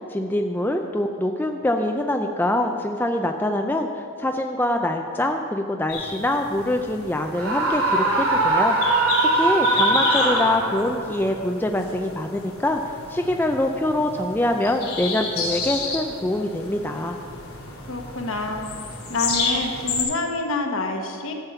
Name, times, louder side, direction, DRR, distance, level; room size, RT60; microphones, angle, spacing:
voice 1, 0.1-8.8 9.2-12.8 13.1-17.2, left 1 dB, 10° left, 3 dB, 0.4 m, -24 dB
sound 1, 5.9-20.0, left 4 dB, 85° left, 2.5 m, -31 dB
Screaming, 7.4-11.0, right 2 dB, 85° right, 2.7 m, -21 dB
voice 2, 17.9-18.7 19.1-21.3, left 2 dB, 65° left, 3 dB, 1.2 m, -27 dB
12.5 x 7.3 x 5.6 m, 2.4 s
head